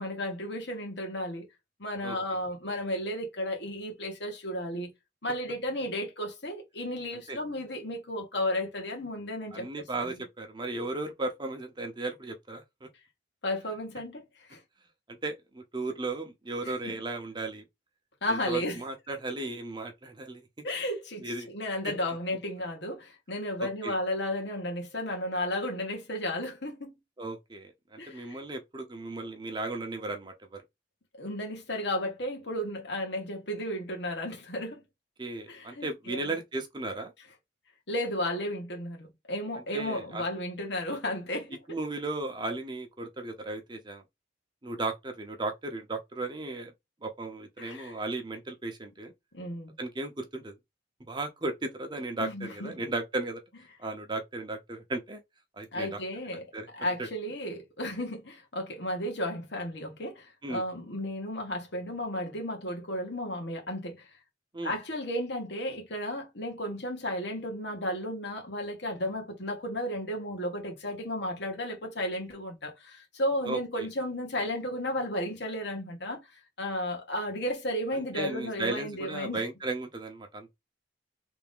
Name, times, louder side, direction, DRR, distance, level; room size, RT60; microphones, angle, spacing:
voice 1, 0.0-1.5 1.8-4.9 5.2-9.7 13.4-14.6 16.6-16.9 18.2-18.8 20.6-26.9 28.0-28.5 31.1-34.8 35.5-36.4 37.9-41.6 47.6-47.9 49.3-49.7 52.2-52.7 55.7-56.5 56.7-64.0 64.6-79.5, left 1 dB, 65° left, 1.5 m, -33 dB
voice 2, 9.5-12.9 15.2-17.6 18.3-20.5 21.2-21.5 21.8-21.9 23.8-24.0 27.2-30.6 35.2-37.1 39.7-40.2 41.7-44.0 44.6-46.7 47.0-49.1 49.8-50.6 51.1-53.4 53.8-55.2 55.6-56.0 56.5-56.7 57.0-57.1 60.4-60.6 64.5-64.7 73.4-73.9 77.9-80.5, right 2 dB, 25° right, 0.7 m, -35 dB
3.4 x 2.7 x 3.6 m
head